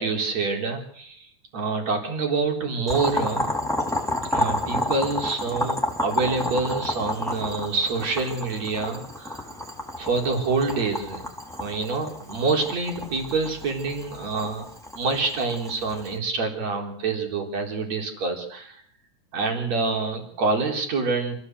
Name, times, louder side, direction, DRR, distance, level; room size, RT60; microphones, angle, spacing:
voice 1, 0.0-3.5 4.3-9.5 10.0-11.3 11.5-14.7 15.0-18.8 19.3-21.3, right 4 dB, 60° right, 2 dB, 5.3 m, -27 dB
Boiling, 2.9-16.1, left 1 dB, ahead, 3.5 m, -30 dB
27.0 x 16.0 x 8.1 m, 0.63 s
omnidirectional pair, 3.5 m